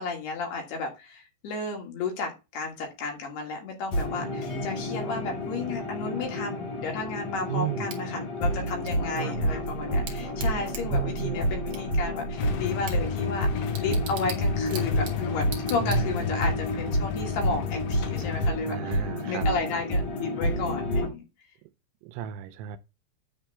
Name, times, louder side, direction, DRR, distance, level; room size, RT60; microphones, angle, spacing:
voice 1, 0.0-21.2, left 4 dB, 65° left, 3.5 m, -33 dB
sound 1, 3.9-21.1, equal, 45° left, 2.0 m, -29 dB
voice 2, 7.5-7.9 9.1-9.6 10.9-11.5 15.8-16.2 18.7-19.5 22.0-22.8, right 12 dB, 85° right, 3.1 m, -33 dB
Bicycle / Tick, 7.9-16.5, right 6 dB, 60° right, 2.1 m, -44 dB
Motorcycle / Engine starting / Idling, 12.4-18.5, left 12 dB, 90° left, 3.6 m, -33 dB
9.8 x 3.6 x 6.7 m
omnidirectional pair, 5.5 m